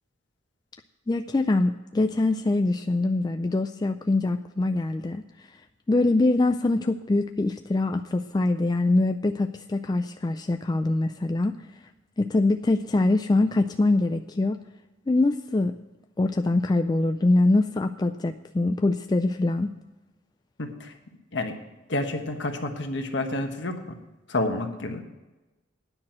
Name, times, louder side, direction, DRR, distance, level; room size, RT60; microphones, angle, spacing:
voice 1, 1.1-5.6 5.9-11.8 12.2-14.6 15.1-15.8 16.2-19.7, left 2 dB, 20° left, 7 dB, 0.3 m, -24 dB
voice 2, 20.6-21.0 21.3-21.6 21.9-24.0 24.3-25.0, left 2 dB, 60° left, 5 dB, 1.3 m, -29 dB
9.9 x 6.1 x 8.7 m, 1.1 s
head